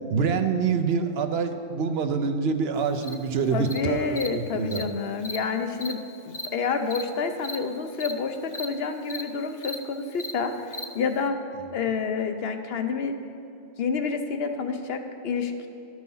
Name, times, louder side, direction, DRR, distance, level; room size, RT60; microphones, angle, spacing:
voice 1, 0.1-4.8, right 5 dB, 70° right, 8 dB, 0.9 m, -26 dB
Cricket, 3.0-3.1 3.7-3.8 4.2-4.3 4.7-4.8 5.2-5.4 5.8-5.9 6.3-6.5 6.9-7.0 7.4-7.6 8.0-8.1 8.5-8.7 9.1-9.2 9.6-9.8 10.2-10.3 10.7-10.8, left 1 dB, 30° left, 0.4 m, -35 dB
voice 2, 3.5-11.3 11.7-13.1 13.8-15.7, left 5 dB, 70° left, 7 dB, 0.9 m, -29 dB
11.5 x 6.2 x 5.5 m, 2.6 s
omnidirectional pair, 1.1 m